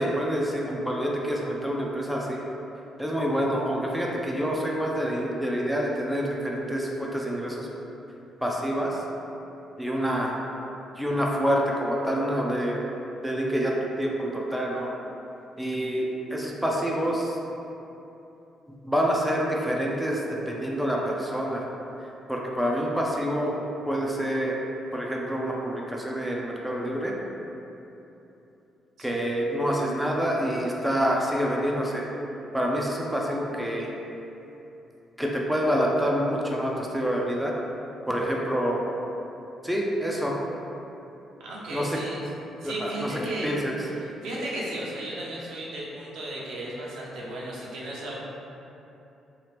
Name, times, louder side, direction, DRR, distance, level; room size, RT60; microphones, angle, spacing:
voice 1, 0.0-2.4 3.0-7.7 8.4-9.0 9.8-10.4 11.0-12.8 13.2-14.9 15.6-17.4 18.8-20.2 20.5-21.7 22.3-23.6 23.9-24.6 24.9-27.1 29.0-32.0 32.5-33.9 35.2-37.5 38.1-38.8 39.6-40.3 41.7-42.0 42.6-43.1 43.4-43.8, equal, 5° right, -2 dB, 0.4 m, -27 dB
voice 2, 41.4-42.2 42.6-43.6 44.0-48.2, right 1 dB, 85° right, -6 dB, 0.6 m, -35 dB
2.8 x 2.4 x 3.3 m, 2.9 s
cardioid pair, 90°, 0 cm